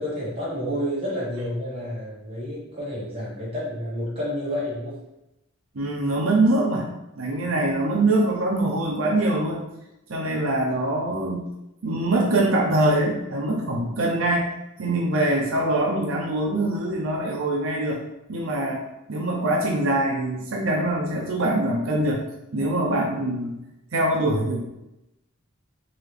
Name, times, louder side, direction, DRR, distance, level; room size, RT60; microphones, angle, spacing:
voice 1, 0.0-5.0 7.3-7.5, equal, 30° right, -7 dB, 1.4 m, -30 dB
voice 2, 5.7-9.6 10.1-11.4 11.8-14.5 14.8-18.0 18.3-18.8 19.1-22.2 22.5-23.6 23.9-24.6, right 1 dB, 85° right, -1 dB, 0.7 m, -23 dB
4.0 x 2.9 x 3.2 m, 0.90 s
head